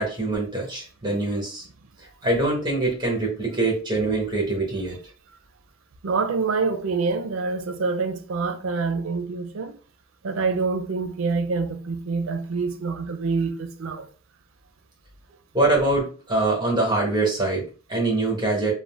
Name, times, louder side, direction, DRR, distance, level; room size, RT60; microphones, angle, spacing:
voice 1, 0.0-1.6 2.2-5.0 15.5-18.7, right 2 dB, 20° right, 1.0 m, -24 dB
voice 2, 6.0-9.7 10.2-14.1, right 4 dB, 75° right, 0.5 m, -26 dB
2.6 x 2.1 x 3.2 m
head